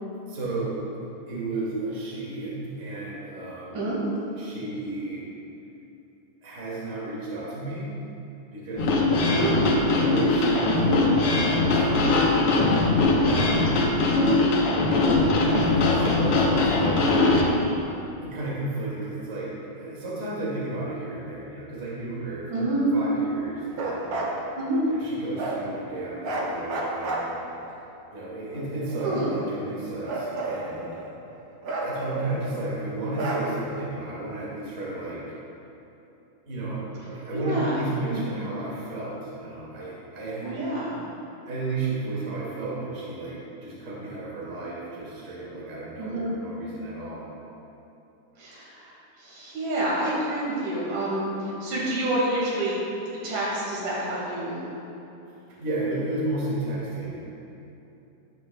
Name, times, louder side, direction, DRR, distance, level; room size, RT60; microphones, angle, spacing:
voice 1, 0.3-0.8 1.3-3.9 4.4-5.2 6.4-8.0 8.5-9.0 9.3-9.5 9.9-12.3 13.3-13.9 15.3-17.2 18.2-24.3 24.9-27.4 28.1-30.9 31.8-35.2 36.5-40.5 41.5-47.2 55.6-57.2, right 2 dB, 30° right, -7 dB, 1.9 m, -33 dB
sound 1, 8.8-17.4, left 2 dB, 75° left, 1.3 m, -21 dB
voice 2, 9.3-9.7 10.4-10.7 14.2-15.1 22.5-22.9 24.5-24.9 29.0-29.3 37.3-38.2 40.4-41.0 46.0-46.3 48.4-52.7 53.2-54.6, right 1 dB, 70° right, -6 dB, 3.3 m, -28 dB
Bark, 23.7-24.4 25.4-25.6 26.2-27.7 28.5-29.6 30.0-31.2 31.6-32.7 33.1-33.8, right 2 dB, 90° right, 1.1 m, -31 dB
11.5 x 9.5 x 2.2 m, 2.9 s
omnidirectional pair, 3.8 m